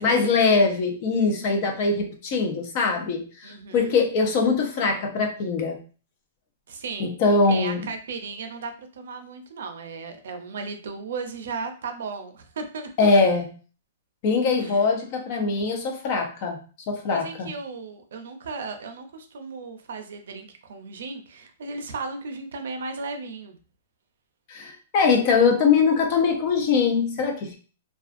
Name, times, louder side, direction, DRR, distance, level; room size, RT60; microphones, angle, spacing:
voice 1, 0.0-5.8 7.0-7.9 13.0-13.5 14.2-16.6 16.9-17.5 24.5-27.6, left 4 dB, 40° left, 3 dB, 0.6 m, -22 dB
voice 2, 3.4-4.1 6.7-7.1 7.4-12.9 14.6-14.9 17.1-23.6, right 4 dB, 70° right, 6 dB, 0.5 m, -36 dB
2.4 x 2.3 x 2.5 m, 0.39 s
hypercardioid pair, 160°, 0 cm